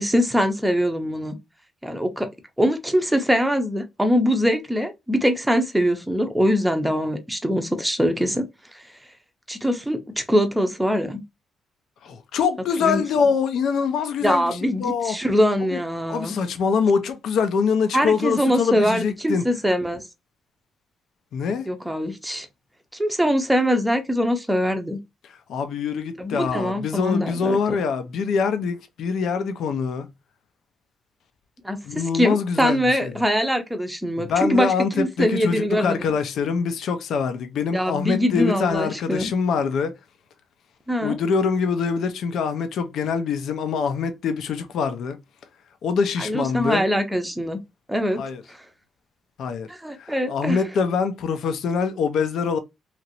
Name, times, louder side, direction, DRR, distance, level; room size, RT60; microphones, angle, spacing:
voice 1, 0.0-1.3 1.8-2.3 2.6-8.8 9.5-11.2 12.8-13.0 14.2-16.4 17.9-20.1 21.7-22.5 22.9-25.0 26.2-27.8 31.6-31.8 32.1-36.0 37.7-39.3 40.9-41.2 46.2-47.6 47.9-48.2 49.7-50.6, equal, 5° right, 0.6 m, -23 dB
voice 2, 12.0-15.2 15.7-15.8 16.1-19.4 21.3-21.7 25.2-30.1 31.8-33.2 34.2-39.9 41.0-45.2 45.8-46.8 48.2-48.4 49.4-49.7 50.0-52.6, left 5 dB, 70° left, 0.5 m, -24 dB
2.9 x 2.5 x 2.8 m
cardioid pair, 115°, 0 cm